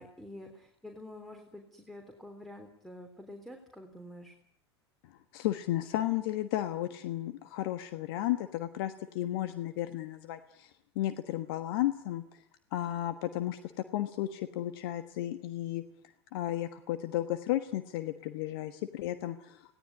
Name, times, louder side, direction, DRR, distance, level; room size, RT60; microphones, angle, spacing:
voice 1, 0.0-4.3, left 1 dB, ahead, 4 dB, 3.5 m, -48 dB
voice 2, 5.0-12.4 12.7-15.8 16.3-19.7, left 14 dB, 55° left, 10 dB, 1.4 m, -34 dB
26.5 x 18.0 x 9.7 m, 0.74 s
figure-of-eight pair, 85°, 14 cm